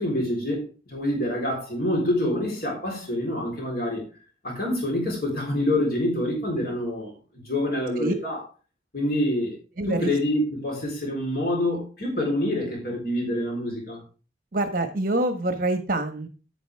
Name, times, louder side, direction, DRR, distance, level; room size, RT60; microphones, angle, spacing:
voice 1, 0.0-4.0 4.4-7.1 7.4-8.4 8.9-9.6 9.9-14.0, left 1 dB, 55° left, 4.0 m, -26 dB
voice 2, 9.8-10.1 14.5-16.3, right 2 dB, 50° right, 1.4 m, -26 dB
10.5 x 9.2 x 3.5 m
head